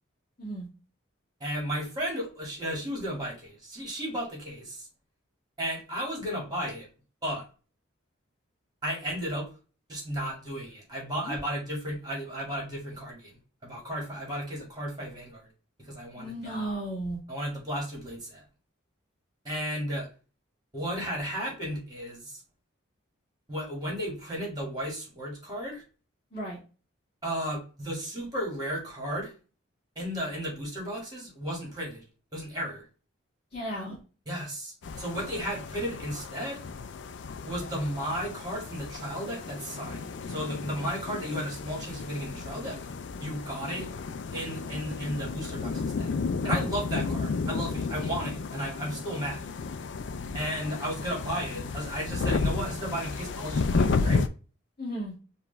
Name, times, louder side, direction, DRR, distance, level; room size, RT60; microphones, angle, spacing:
voice 1, 1.4-4.9 5.6-6.9 7.2-7.4 8.8-9.5 9.9-13.3 13.6-15.5 15.9-16.7 17.3-18.4 19.4-20.1 20.7-22.4 23.5-25.8 27.2-29.3 30.0-32.0 32.3-32.9 34.3-36.6 37.5-42.8 43.2-43.9 44.3-46.1 46.4-49.4 50.3-54.2, equal, 20° right, -2 dB, 1.9 m, -34 dB
voice 2, 16.2-17.2 26.3-26.6 33.5-33.9 54.8-55.1, right 1 dB, 35° left, -6 dB, 2.1 m, -34 dB
sound 1, 34.8-54.3, left 4 dB, 60° left, 0.4 m, -33 dB
4.9 x 2.5 x 3.2 m, 0.36 s
head